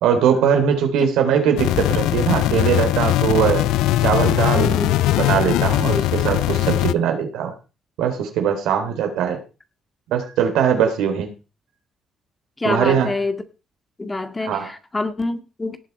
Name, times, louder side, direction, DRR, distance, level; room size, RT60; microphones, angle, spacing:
voice 1, 0.0-3.6 4.0-4.7 5.2-7.5 8.0-9.4 10.1-11.3 12.6-13.1 14.4-14.7, right 8 dB, 80° right, 5 dB, 3.7 m, -20 dB
sound 1, 1.6-6.9, left 14 dB, 85° left, 0.5 m, -20 dB
voice 2, 4.5-4.9 5.8-6.0 12.6-13.4 14.0-15.8, left 2 dB, 25° left, 8 dB, 2.2 m, -26 dB
18.0 x 7.5 x 4.5 m, 0.32 s
supercardioid pair, 60°, 0 cm